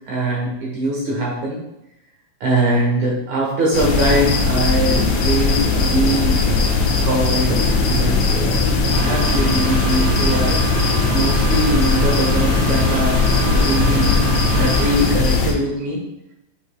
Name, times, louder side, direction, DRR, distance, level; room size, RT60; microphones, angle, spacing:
voice 1, 0.1-1.6 2.4-6.4 7.0-13.2 13.5-14.1 14.5-16.0, right 1 dB, 70° right, -3 dB, 1.8 m, -22 dB
sound 1, 3.7-15.5, left 3 dB, 70° left, 1.8 m, -18 dB
sound 2, 8.9-15.2, equal, 40° right, 1.7 m, -26 dB
7.9 x 5.3 x 2.2 m, 0.86 s
omnidirectional pair, 4.9 m